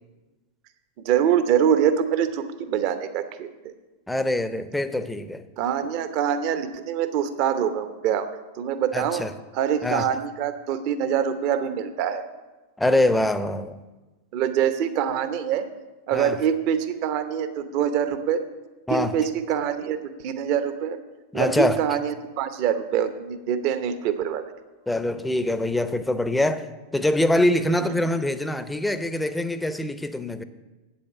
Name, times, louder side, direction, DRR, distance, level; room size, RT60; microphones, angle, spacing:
voice 1, 1.0-3.5 5.6-8.3 8.6-9.2 9.5-12.2 14.3-15.7 16.1-18.4 18.9-20.0 20.2-21.0 21.3-24.5 27.8-27.9, right 9 dB, 45° right, 0.8 m, -24 dB
voice 2, 4.1-5.4 8.9-9.3 9.8-10.1 12.8-13.8 16.1-16.4 18.9-19.2 21.3-21.8 24.9-26.7 26.9-30.4, left 1 dB, 5° left, 0.7 m, -24 dB
8.7 x 8.4 x 7.1 m
figure-of-eight pair, 90°, 0 cm